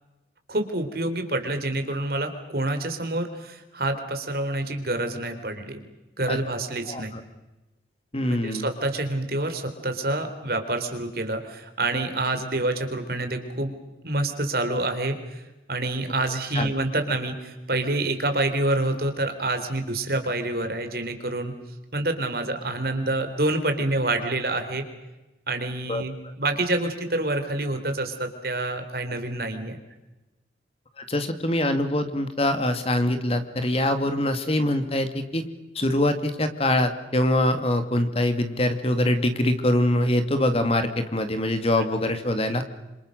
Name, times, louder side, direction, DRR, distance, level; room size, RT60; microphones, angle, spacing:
voice 1, 0.5-5.9 6.2-7.1 8.3-13.7 14.0-15.4 15.7-21.5 21.9-24.8 25.5-29.8, right 2 dB, 55° right, 7 dB, 3.7 m, -27 dB
voice 2, 6.9-7.2 8.1-8.7 16.5-16.7 25.9-26.0 31.0-35.4 35.8-42.6, left 1 dB, 35° left, 9 dB, 2.2 m, -24 dB
28.0 x 27.0 x 6.6 m, 1.0 s
head